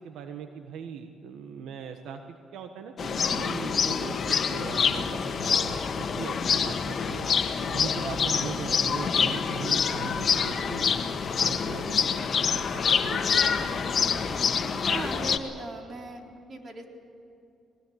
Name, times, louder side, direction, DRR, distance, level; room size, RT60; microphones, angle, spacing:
voice 1, 0.0-7.3 7.7-11.0 11.4-12.3 12.5-13.5, right 7 dB, 85° right, 6 dB, 1.3 m, -40 dB
sound 1, 3.0-15.4, left 6 dB, 50° left, 1.6 m, -26 dB
voice 2, 14.8-16.2 16.5-16.8, right 2 dB, 45° right, 2 dB, 3.8 m, -37 dB
21.0 x 20.0 x 8.8 m, 2.7 s
cardioid pair, 90°, 0 cm